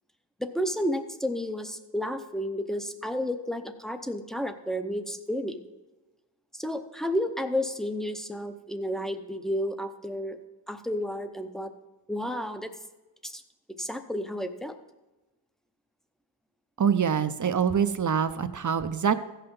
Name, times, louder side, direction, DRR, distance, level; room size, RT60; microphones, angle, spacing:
voice 1, 0.4-5.6 6.5-10.4 10.7-11.7 12.1-12.7 13.2-13.4 13.8-14.8, equal, ahead, 8 dB, 0.7 m, -31 dB
voice 2, 16.8-19.1, right 7 dB, 40° right, 11 dB, 0.6 m, -25 dB
15.5 x 5.8 x 5.3 m, 1.1 s
wide cardioid pair, 115°, 45 cm